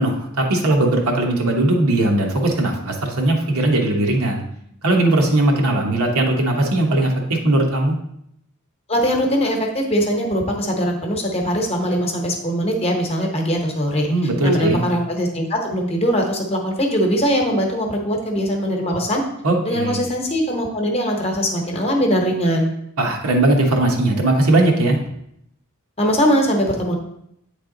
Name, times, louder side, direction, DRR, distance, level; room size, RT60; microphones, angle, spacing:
voice 1, 0.0-4.4 4.8-8.0 14.1-14.8 19.4-20.1 23.0-25.0, right 2 dB, 80° right, 1 dB, 1.1 m, -19 dB
voice 2, 8.9-14.1 14.4-19.2 19.6-22.7 26.0-26.9, equal, 30° left, 1 dB, 0.9 m, -21 dB
8.6 x 3.4 x 3.8 m, 0.76 s
head